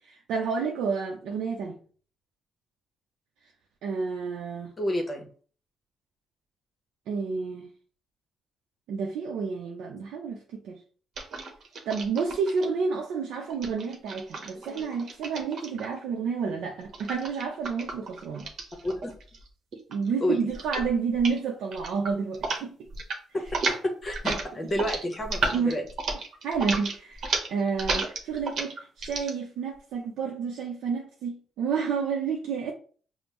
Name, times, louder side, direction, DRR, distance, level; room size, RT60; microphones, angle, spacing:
voice 1, 0.0-1.8 3.8-4.7 7.1-7.7 8.9-10.8 11.9-18.5 19.9-22.8 25.4-25.8 26.4-32.7, right 5 dB, 80° right, 0.5 m, -30 dB
voice 2, 4.8-5.3 18.8-19.1 20.2-20.5 23.3-25.9, left 1 dB, 30° left, 0.8 m, -30 dB
sound 1, 11.2-12.7 13.5-16.0 16.9-19.5 19.7-20.1 20.5-20.9 21.1-21.4 21.7-22.6 22.9-23.2 23.5-29.3, right 3 dB, 60° right, 0.9 m, -32 dB
5.1 x 2.0 x 3.0 m
cardioid pair, 90°, 0 cm